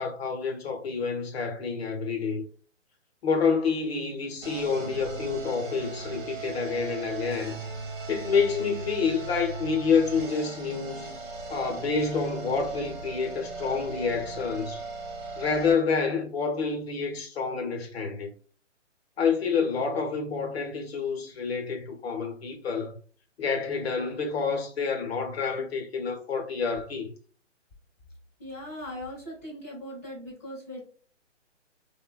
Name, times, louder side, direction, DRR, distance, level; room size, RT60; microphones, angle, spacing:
voice 1, 0.0-2.4 3.2-7.6 8.1-11.1 11.5-14.8 15.4-18.3 19.2-23.0 23.4-27.1, left 5 dB, 55° left, 0.7 m, -28 dB
sound 1, 4.4-15.7, right 4 dB, 40° right, 0.7 m, -38 dB
voice 2, 28.4-30.8, left 1 dB, 10° left, 0.6 m, -39 dB
3.2 x 2.1 x 2.3 m
hypercardioid pair, 165°, 37 cm